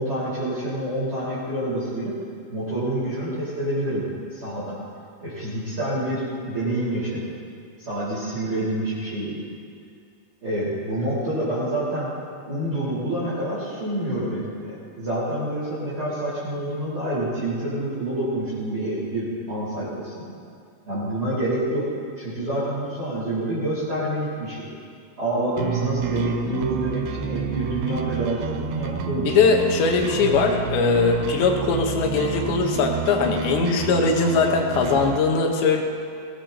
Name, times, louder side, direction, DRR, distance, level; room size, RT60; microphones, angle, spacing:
voice 1, 0.0-2.1 2.5-4.0 4.3-4.7 5.2-7.3 7.8-9.4 10.4-12.1 12.5-20.2 20.8-21.8 22.2-24.7 25.2-29.4, right 1 dB, 20° right, -11 dB, 4.7 m, -27 dB
sound 1, 25.6-35.2, right 9 dB, 80° right, 2.3 m, -29 dB
voice 2, 29.3-35.8, left 5 dB, 80° left, 1 dB, 3.5 m, -20 dB
22.5 x 17.5 x 3.0 m, 2.4 s
omnidirectional pair, 5.0 m